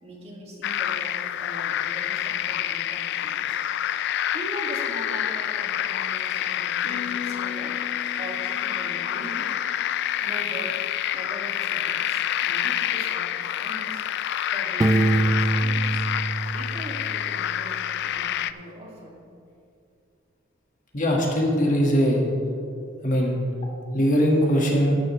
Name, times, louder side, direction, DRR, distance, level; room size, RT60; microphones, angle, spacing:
voice 1, 0.0-3.6 4.3-7.8 8.2-9.5 10.2-10.8 11.1-14.0 14.5-16.1 16.5-19.2, right 1 dB, 30° right, -3 dB, 2.2 m, -40 dB
sound 1, 0.6-18.5, left 11 dB, 60° left, 0.3 m, -28 dB
sound 2, 6.9-10.3, left 7 dB, 70° right, 2.3 m, -39 dB
Piano, 14.8-17.6, right 2 dB, 15° right, 0.4 m, -24 dB
voice 2, 20.9-22.2 23.0-23.4 23.9-25.0, equal, 40° left, -1 dB, 1.7 m, -21 dB
12.5 x 12.0 x 3.2 m, 2.5 s
head